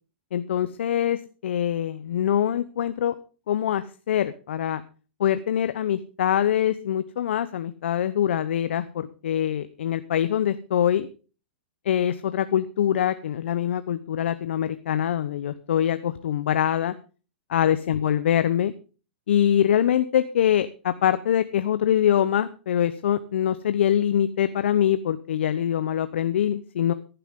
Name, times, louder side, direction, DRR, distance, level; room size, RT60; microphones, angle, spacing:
voice 1, 0.3-1.2 1.4-3.1 3.5-4.8 5.2-11.1 11.9-16.9 17.5-18.7 19.3-26.9, left 10 dB, 75° left, 12 dB, 0.8 m, -24 dB
14.5 x 11.5 x 3.7 m, 0.35 s
hypercardioid pair, 135°, 6 cm